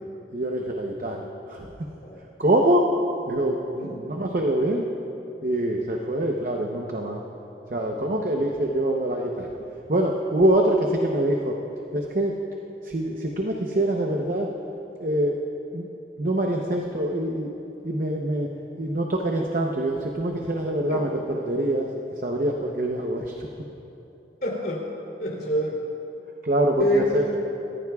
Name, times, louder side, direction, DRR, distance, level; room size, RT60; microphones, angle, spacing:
voice 1, 0.3-1.7 2.4-2.9 3.3-4.9 5.4-7.2 7.7-9.5 9.9-11.6 11.9-12.4 12.8-14.5 15.0-15.4 15.7-15.9 16.2-17.5 17.8-18.5 18.8-21.9 22.2-23.5 26.4-27.2, right 1 dB, 50° right, 1 dB, 0.8 m, -24 dB
voice 2, 24.4-24.8 25.2-25.8 26.8-27.4, left 1 dB, 55° left, -3 dB, 3.1 m, -26 dB
26.0 x 14.5 x 2.4 m, 3.0 s
head